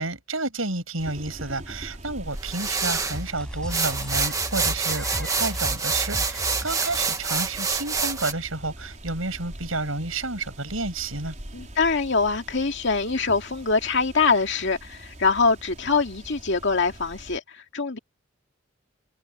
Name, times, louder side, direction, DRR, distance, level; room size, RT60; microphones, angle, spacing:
voice 1, 0.0-11.3, right 2 dB, 80° right, 7.8 m, -30 dB
sound 1, 1.0-17.4, right 1 dB, 35° right, 4.6 m, -43 dB
sound 2, 2.4-3.2 3.7-8.3, right 4 dB, 15° right, 1.7 m, -27 dB
sound 3, 3.1-7.0, equal, 5° left, 7.0 m, -35 dB
voice 2, 11.5-18.0, left 4 dB, 60° left, 2.4 m, -24 dB
head